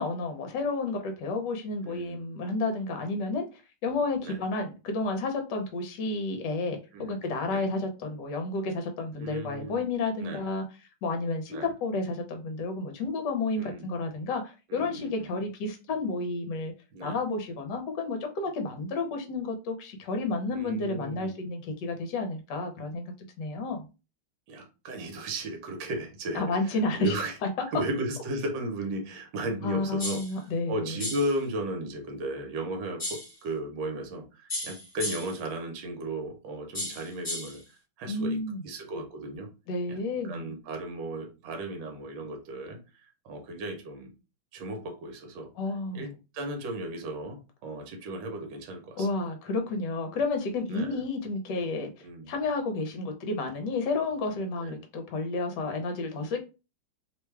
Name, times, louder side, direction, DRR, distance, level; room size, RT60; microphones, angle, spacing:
voice 1, 0.0-10.6 11.0-16.7 17.0-23.9 26.3-27.1 27.4-27.5 29.6-31.0 38.0-38.6 39.7-40.5 45.6-46.1 49.0-56.4, left 3 dB, 65° left, 1.3 m, -31 dB
voice 2, 1.8-2.2 4.2-4.4 6.9-7.2 7.5-7.7 9.1-9.9 10.2-10.4 11.5-11.7 13.6-13.9 14.7-15.3 16.9-17.2 20.5-21.4 24.5-27.4 27.7-38.4 38.6-39.5 39.9-40.0 40.2-42.8 43.2-44.1 44.5-45.5 45.9-49.1 50.7-51.0 52.0-52.3 54.6-54.8, right 1 dB, 65° right, 1.4 m, -35 dB
sound 1, 30.0-30.3 31.0-31.3 33.0-33.3 34.5-35.4 36.7-37.6, left 1 dB, 20° left, 1.1 m, -34 dB
3.4 x 2.2 x 3.2 m
omnidirectional pair, 2.4 m